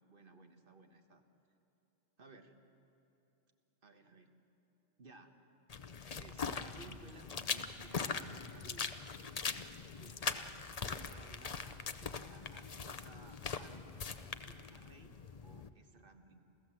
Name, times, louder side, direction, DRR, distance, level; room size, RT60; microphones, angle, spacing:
voice 1, 0.1-1.2 2.2-2.5 3.8-4.3 5.0-5.3 6.2-8.9 10.0-13.9 14.4-15.1 15.4-16.4, right 3 dB, 60° right, 6 dB, 1.6 m, -58 dB
sound 1, 5.7-15.7, left 5 dB, 40° left, 0.7 m, -41 dB
28.5 x 15.0 x 7.7 m, 2.8 s
omnidirectional pair, 1.1 m